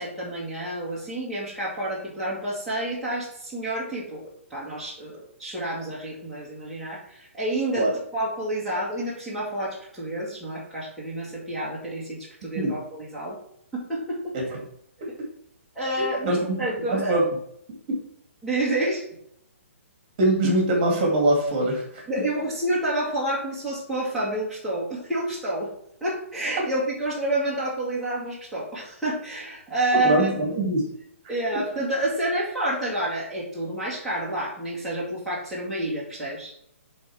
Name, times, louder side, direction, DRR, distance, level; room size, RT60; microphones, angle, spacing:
voice 1, 0.0-4.2 4.5-7.9 8.1-13.4 13.7-14.4 15.8-17.1 18.4-19.1 22.1-25.7 26.0-30.3 31.3-36.6, right 1 dB, ahead, -9 dB, 1.8 m, -29 dB
voice 2, 16.0-16.4 16.9-17.2 17.9-18.0 20.2-21.8 30.0-30.9, right 1 dB, 35° right, 0 dB, 2.2 m, -22 dB
8.2 x 3.7 x 4.7 m, 0.71 s
hypercardioid pair, 155°, 7 cm